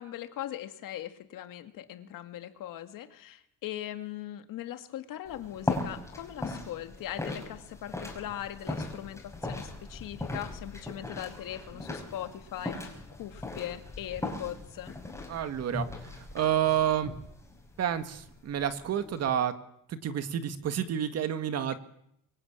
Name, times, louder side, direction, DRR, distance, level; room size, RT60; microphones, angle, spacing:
voice 1, 0.0-12.9 13.2-14.9, left 12 dB, 75° left, 8 dB, 2.3 m, -40 dB
sound 1, 5.3-19.3, left 2 dB, 10° left, 5.2 m, -39 dB
voice 2, 15.3-17.1 17.8-19.5 19.9-21.8, right 10 dB, 50° right, 10 dB, 1.9 m, -29 dB
24.5 x 23.0 x 8.9 m, 0.75 s
cardioid pair, 180°, 33 cm